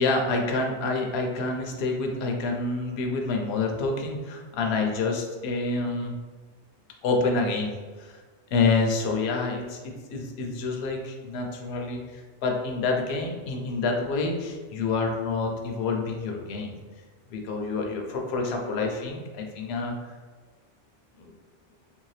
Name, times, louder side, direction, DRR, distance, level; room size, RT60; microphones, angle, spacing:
voice 1, 0.0-6.1 7.0-7.7 8.0-8.2 8.5-16.8 17.3-20.1 21.2-21.3, left 3 dB, 70° left, 2 dB, 0.8 m, -28 dB
3.2 x 2.7 x 3.2 m, 1.4 s
omnidirectional pair, 1.2 m